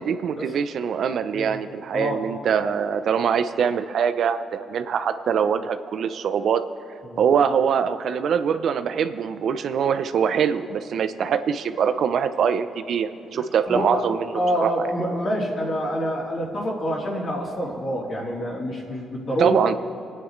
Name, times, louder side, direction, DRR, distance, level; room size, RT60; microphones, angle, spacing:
voice 1, 0.0-6.6 7.2-14.3 14.6-14.9 19.4-19.8, right 7 dB, 70° right, 11 dB, 0.6 m, -23 dB
voice 2, 13.3-14.0 14.3-19.6, equal, 55° left, -7 dB, 3.4 m, -27 dB
25.5 x 9.5 x 3.3 m, 2.8 s
supercardioid pair, 65°, 0 cm